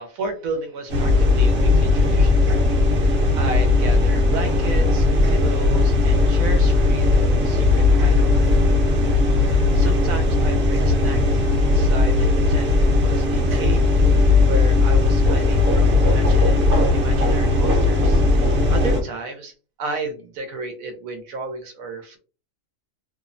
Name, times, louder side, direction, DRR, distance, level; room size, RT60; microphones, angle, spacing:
voice 1, 0.0-9.1 9.4-13.8 14.1-19.5 19.8-22.2, right 3 dB, 85° right, 5 dB, 1.0 m, -33 dB
sound 1, 0.9-19.0, left 3 dB, 55° right, 1.0 m, -17 dB
2.8 x 2.0 x 2.4 m, 0.34 s
omnidirectional pair, 1.4 m